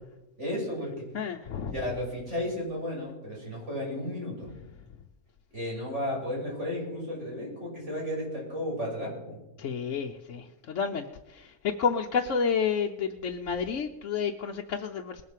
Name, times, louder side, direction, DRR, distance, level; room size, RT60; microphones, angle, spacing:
voice 1, 0.4-0.9 1.7-4.5 5.5-9.4, left 1 dB, 50° right, -4 dB, 7.0 m, -33 dB
voice 2, 1.1-1.7 9.6-11.0 11.3-15.2, left 6 dB, 60° left, 2 dB, 1.1 m, -30 dB
20.0 x 7.8 x 7.5 m, 0.99 s
omnidirectional pair, 1.5 m